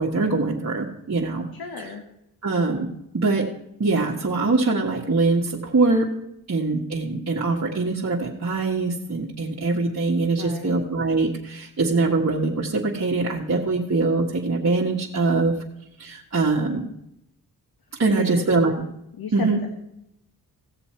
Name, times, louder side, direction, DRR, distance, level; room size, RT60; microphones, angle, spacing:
voice 1, 0.0-1.4 2.4-3.5 3.8-6.1 6.5-15.5 16.0-16.8 18.0-18.8 19.3-19.6, right 3 dB, 45° right, -4 dB, 1.7 m, -23 dB
voice 2, 1.6-2.0 10.4-10.9 18.1-18.4 19.2-19.7, left 5 dB, 75° left, 4 dB, 1.4 m, -33 dB
17.0 x 6.8 x 4.5 m, 0.83 s
cardioid pair, 50°, 37 cm